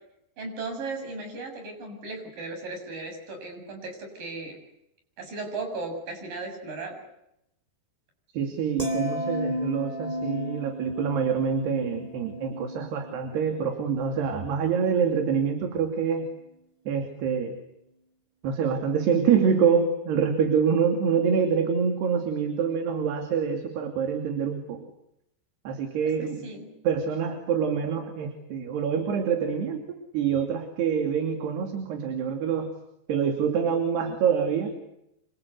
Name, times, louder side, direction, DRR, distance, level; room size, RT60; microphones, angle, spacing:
voice 1, 0.4-4.6 5.2-7.0 26.1-26.7, right 3 dB, 50° right, 4 dB, 8.9 m, -36 dB
voice 2, 8.3-16.3 16.9-17.5 18.4-24.9 25.6-26.5 26.8-29.8 30.1-32.7 33.1-34.7, right 6 dB, 70° right, 5 dB, 4.6 m, -26 dB
sound 1, 8.8-15.1 15.4-15.7, equal, 10° right, 3.3 m, -34 dB
27.5 x 26.5 x 8.2 m, 0.81 s
omnidirectional pair, 5.0 m